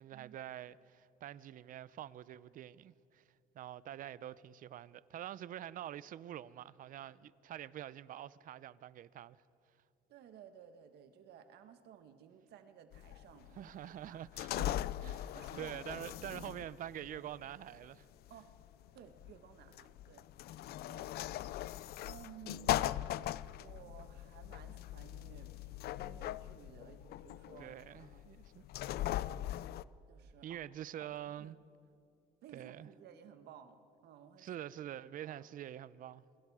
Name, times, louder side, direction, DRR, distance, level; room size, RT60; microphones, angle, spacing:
voice 1, 0.0-3.2 3.5-9.4 13.5-18.1 27.6-28.7 30.4-31.6 32.5-32.9 34.4-36.2, right 11 dB, 55° right, 0.6 m, -46 dB
voice 2, 10.1-13.7 14.0-14.2 15.3-15.7 16.0-16.2 18.3-18.5 18.9-20.3 20.9-21.2 22.0-22.9 23.5-28.2 28.9-29.7 30.1-30.6 31.0-31.1 31.4-31.5 32.4-34.5 35.2-35.5, right 9 dB, 75° right, 1.6 m, -56 dB
sound 1, 12.9-29.8, left 14 dB, 70° left, 0.5 m, -40 dB
27.5 x 23.5 x 4.9 m
cardioid pair, 110°, 17 cm